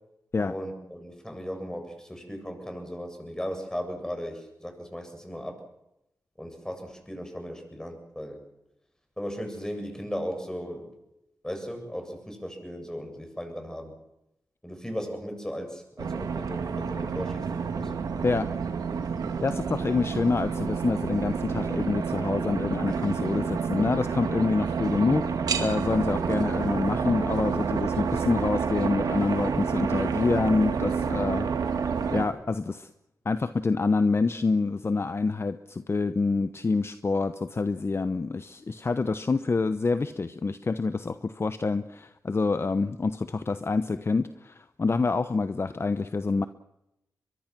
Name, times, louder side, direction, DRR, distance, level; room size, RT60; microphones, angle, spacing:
voice 1, 0.5-5.6 6.4-8.4 9.2-10.9 11.4-13.9 14.6-17.9, equal, 10° left, 5 dB, 7.6 m, -36 dB
sound 1, 16.0-32.3, right 6 dB, 85° right, 2.6 m, -29 dB
voice 2, 19.4-25.2 25.6-31.5 32.1-32.9 33.2-46.5, left 4 dB, 40° left, 11 dB, 0.9 m, -27 dB
23.0 x 23.0 x 6.2 m, 0.86 s
cardioid pair, 60°, 6 cm